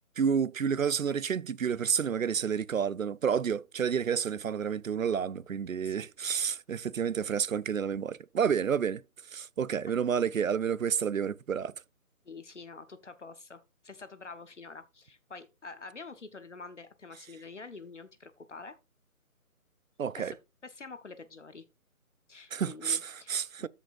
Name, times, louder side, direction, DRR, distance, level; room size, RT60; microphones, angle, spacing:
voice 1, 0.2-9.0 9.3-11.7 20.0-20.3 22.5-23.7, right 7 dB, 65° right, 0.6 m, -30 dB
voice 2, 12.2-18.8 20.2-20.4 20.6-21.6 22.3-23.7, left 4 dB, 55° left, 1.0 m, -47 dB
13.5 x 5.3 x 2.5 m
figure-of-eight pair, 175°, 44 cm